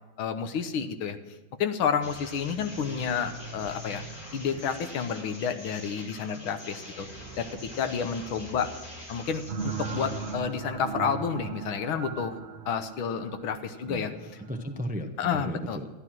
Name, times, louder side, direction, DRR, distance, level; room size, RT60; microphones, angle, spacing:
voice 1, 0.2-1.2 1.6-4.0 4.3-7.1 7.4-8.7 9.1-12.4 12.7-14.1 15.2-15.8, left 7 dB, 80° left, 9 dB, 1.7 m, -30 dB
sound 1, 2.0-10.3, left 1 dB, 45° left, 5.3 m, -43 dB
sound 2, 9.5-14.8, right 6 dB, 45° right, 0.8 m, -37 dB
voice 2, 13.8-15.9, equal, 10° right, 5 dB, 0.4 m, -35 dB
13.5 x 11.5 x 6.1 m, 1.3 s
omnidirectional pair, 2.2 m